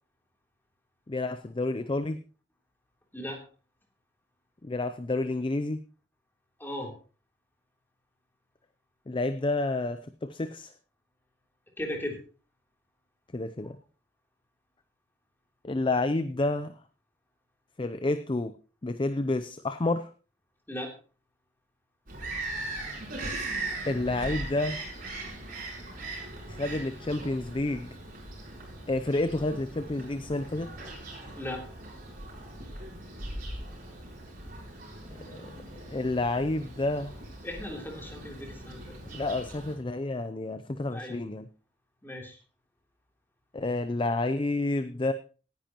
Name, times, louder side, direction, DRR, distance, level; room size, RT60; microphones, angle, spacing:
voice 1, 1.1-2.2 4.6-5.8 9.1-10.7 13.3-13.8 15.6-16.7 17.8-18.5 18.8-20.1 23.8-24.8 26.5-27.9 28.9-30.7 35.1-35.6 35.9-37.2 39.1-41.5 43.5-45.1, left 2 dB, 30° left, 11 dB, 0.5 m, -29 dB
voice 2, 6.6-6.9 11.8-12.2 20.7-20.9 31.3-31.6 37.4-39.2 40.9-41.1 42.0-42.4, left 1 dB, 10° left, 0 dB, 3.2 m, -37 dB
Bird vocalization bird call bird song, 22.1-39.7, right 2 dB, 50° right, 5.7 m, -40 dB
17.5 x 10.5 x 3.0 m, 0.37 s
head